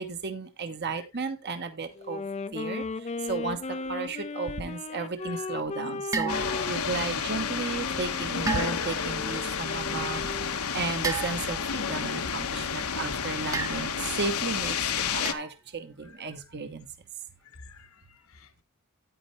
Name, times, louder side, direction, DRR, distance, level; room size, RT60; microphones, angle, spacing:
voice 1, 0.0-2.2 2.5-10.3 10.7-16.9, right 4 dB, 50° right, 1.2 m, -34 dB
Wind instrument woodwind instrument, 1.9-10.6, left 3 dB, 30° left, 0.5 m, -37 dB
voice 2, 5.2-5.5 16.0-16.2 17.4-18.6, left 5 dB, 70° left, 1.0 m, -51 dB
sound 1, 6.1-6.8 8.5-9.1 11.0-11.7 13.5-14.1 15.2-15.5, right 4 dB, 15° right, 0.8 m, -32 dB
sound 2, 6.3-15.3, left 6 dB, 90° left, 1.2 m, -31 dB
9.8 x 9.5 x 3.2 m
head